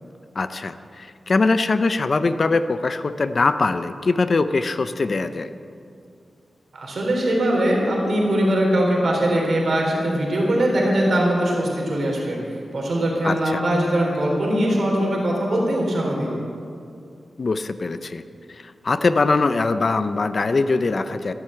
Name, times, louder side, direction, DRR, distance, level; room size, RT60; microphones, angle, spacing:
voice 1, 0.4-5.5 13.2-13.6 17.4-18.2 18.5-21.3, left 3 dB, 40° left, 11 dB, 0.6 m, -22 dB
voice 2, 6.7-16.4, right 1 dB, 55° right, -1 dB, 3.6 m, -21 dB
13.5 x 13.0 x 7.8 m, 2.4 s
wide cardioid pair, 165°, 0 cm